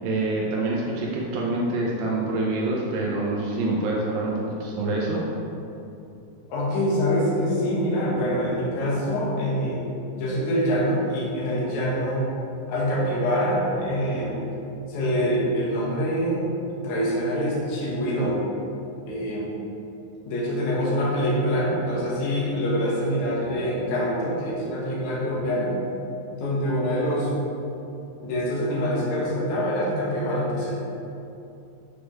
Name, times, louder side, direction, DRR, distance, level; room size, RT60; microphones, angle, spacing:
voice 1, 0.0-5.2, right 2 dB, 80° right, -3 dB, 2.4 m, -26 dB
voice 2, 6.5-9.8 10.1-12.3 12.7-14.3 14.9-18.4 19.1-19.5 20.2-25.7 26.3-27.3 28.2-30.8, equal, 90° left, -6 dB, 1.6 m, -25 dB
8.2 x 6.4 x 3.2 m, 2.7 s
omnidirectional pair, 5.7 m